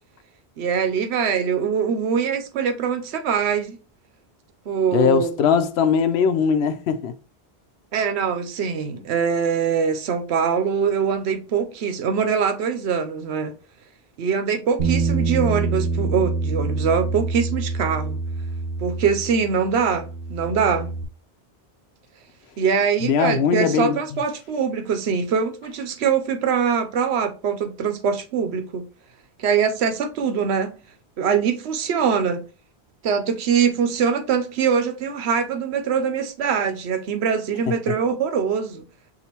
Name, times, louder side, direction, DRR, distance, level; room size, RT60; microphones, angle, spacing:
voice 1, 0.6-3.8 4.7-5.3 7.9-13.5 14.2-18.2 18.8-20.9 22.6-28.8 29.4-30.8 31.2-32.4 33.0-38.9, right 6 dB, 90° right, 0.9 m, -23 dB
voice 2, 4.9-7.1 23.0-24.0, left 7 dB, 85° left, 0.8 m, -20 dB
Bass guitar, 14.8-21.0, right 3 dB, 60° right, 1.2 m, -26 dB
6.7 x 2.6 x 2.9 m
omnidirectional pair, 1.1 m